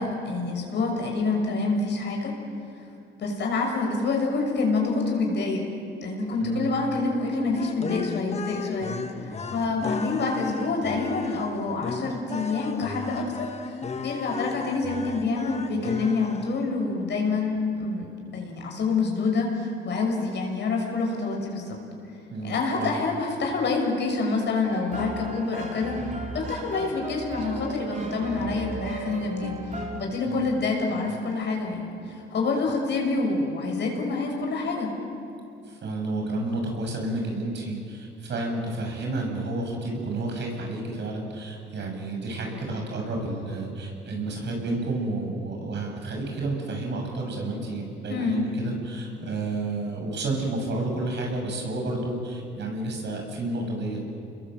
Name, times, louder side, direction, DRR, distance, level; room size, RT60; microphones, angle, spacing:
voice 1, 0.0-2.4 3.2-5.6 6.0-9.0 9.2-21.8 22.4-26.0 26.3-34.9 48.1-48.4, left 3 dB, 60° left, 1 dB, 6.6 m, -27 dB
voice 2, 6.4-6.7 22.3-23.0 30.2-30.4 35.6-54.1, right 2 dB, 65° right, 1 dB, 7.1 m, -31 dB
sound 1, 7.5-16.8, left 5 dB, 35° left, 1.3 m, -35 dB
sound 2, 24.6-30.0, right 2 dB, 35° right, 3.3 m, -36 dB
29.5 x 21.5 x 7.8 m, 2.6 s
cardioid pair, 90°, 20 cm